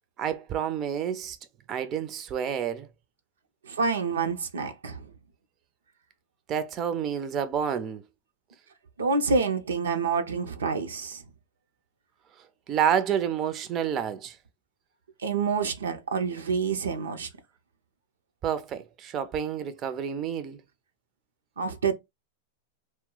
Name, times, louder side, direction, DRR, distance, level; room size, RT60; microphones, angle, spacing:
voice 1, 0.2-1.4 1.7-2.9 6.5-8.0 12.7-14.4 18.4-20.6, right 8 dB, 35° right, 0.4 m, -29 dB
voice 2, 3.7-5.1 9.0-11.2 15.2-17.3 21.6-21.9, right 4 dB, 90° right, 0.5 m, -27 dB
2.2 x 2.0 x 3.7 m
hypercardioid pair, 110°, 0 cm